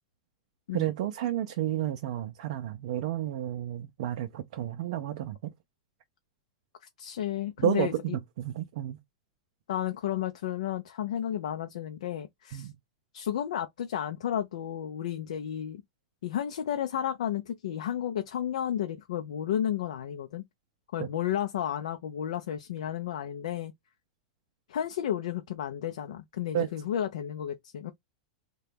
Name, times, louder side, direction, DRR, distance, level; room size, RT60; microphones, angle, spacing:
voice 1, 0.7-5.5 7.6-9.0 12.5-12.7 21.0-21.1 26.5-26.7, right 12 dB, 65° right, 0.4 m, -31 dB
voice 2, 7.0-8.2 9.7-12.7 13.1-15.8 16.2-20.4 20.9-23.7 24.7-27.9, left 10 dB, 85° left, 0.4 m, -32 dB
2.8 x 2.2 x 3.3 m
hypercardioid pair, 130°, 4 cm